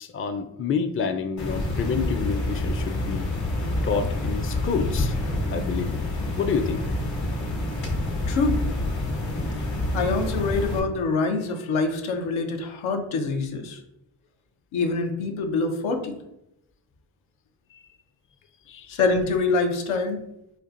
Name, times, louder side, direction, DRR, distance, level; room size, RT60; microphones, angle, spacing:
voice 1, 0.0-3.3 3.8-5.2 5.5-5.9 6.4-6.8 17.7-17.8 18.7-19.0, left 5 dB, 30° left, 7 dB, 0.4 m, -28 dB
sound 1, 1.4-10.8, left 1 dB, 65° left, 1.3 m, -27 dB
voice 2, 8.3-8.6 9.9-13.8 14.7-16.2 18.9-20.2, left 3 dB, 85° left, 4 dB, 0.7 m, -25 dB
4.4 x 2.4 x 2.5 m, 0.82 s
supercardioid pair, 45°, 47 cm